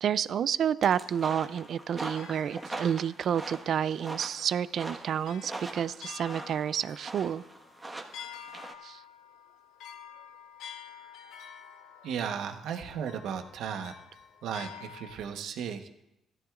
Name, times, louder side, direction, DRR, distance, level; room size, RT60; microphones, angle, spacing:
voice 1, 0.0-7.4 8.8-9.0, right 8 dB, 60° right, 18 dB, 0.4 m, -29 dB
sound 1, 0.8-8.7, right 2 dB, 20° right, 1.4 m, -42 dB
sound 2, 1.6-3.5 4.4-4.5 5.3-15.2, left 8 dB, 90° left, 0.9 m, -49 dB
voice 2, 12.0-13.9 14.4-15.9, right 7 dB, 80° right, 6 dB, 1.1 m, -35 dB
16.0 x 14.0 x 2.5 m, 0.87 s
cardioid pair, 95°, 0 cm